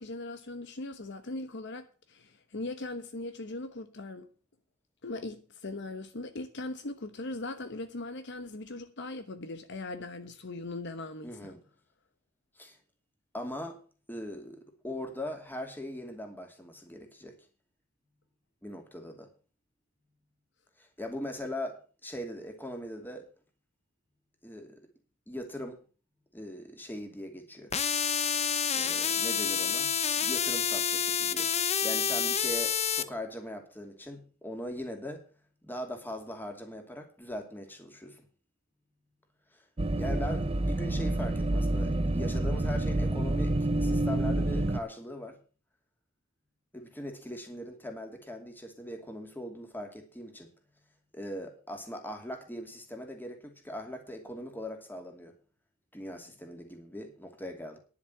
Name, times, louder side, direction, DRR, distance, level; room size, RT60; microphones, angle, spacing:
voice 1, 0.0-4.3 5.0-11.5, left 2 dB, 60° left, 1.0 m, -39 dB
voice 2, 11.2-11.6 12.6-12.8 13.3-13.8 14.1-17.3 18.6-19.3 20.8-23.3 24.4-24.8 25.3-25.8 26.3-27.7 28.7-29.9 30.2-35.2 35.6-38.2 39.5-39.6 40.0-45.4 46.7-50.5 51.1-55.3 55.9-57.8, left 1 dB, 10° left, 2.7 m, -40 dB
sound 1, 27.7-33.0, left 8 dB, 30° left, 0.8 m, -28 dB
sound 2, 39.8-44.8, right 1 dB, 30° right, 0.7 m, -28 dB
10.5 x 7.3 x 7.9 m
head